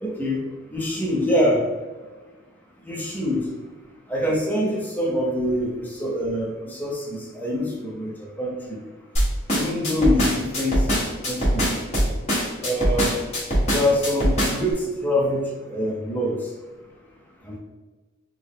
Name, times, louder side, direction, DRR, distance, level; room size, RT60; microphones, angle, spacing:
voice 1, 0.0-0.4 0.7-1.6 2.9-3.4 4.1-8.1 8.4-8.8 9.5-10.8 11.3-11.7 12.6-13.1 13.7-16.4 17.5-17.6, left 1 dB, 10° left, -2 dB, 0.6 m, -24 dB
sound 1, 9.1-14.7, equal, 30° left, 1.2 m, -22 dB
3.7 x 2.0 x 3.6 m, 1.3 s
head